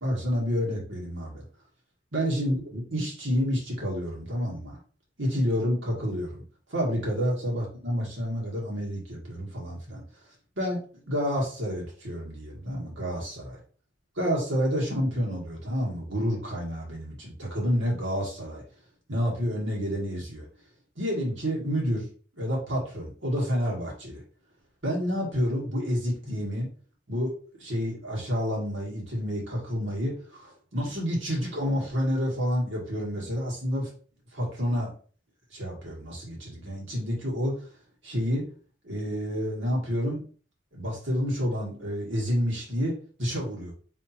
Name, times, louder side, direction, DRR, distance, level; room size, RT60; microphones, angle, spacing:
voice 1, 0.0-1.4 2.1-4.8 5.2-6.4 6.7-10.0 10.6-13.6 14.2-18.6 19.1-20.5 21.0-22.1 22.4-24.2 24.8-26.7 27.1-27.3 27.6-33.9 34.3-34.9 35.5-37.5 38.0-38.5 38.8-40.2 40.7-43.7, equal, 80° right, -3 dB, 2.0 m, -29 dB
3.5 x 2.9 x 4.3 m, 0.41 s
head